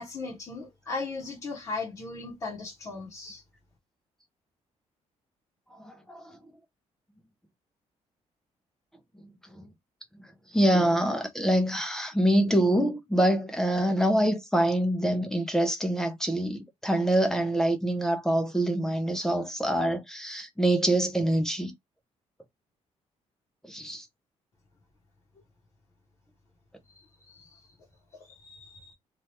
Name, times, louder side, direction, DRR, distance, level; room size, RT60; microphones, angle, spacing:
voice 1, 0.0-3.4 26.9-27.7 28.3-28.9, left 3 dB, 30° left, 0.8 m, -38 dB
voice 2, 5.7-6.4 10.5-21.7 23.6-24.1, right 1 dB, 5° left, 0.4 m, -25 dB
2.8 x 2.3 x 3.0 m
cardioid pair, 180°, 12 cm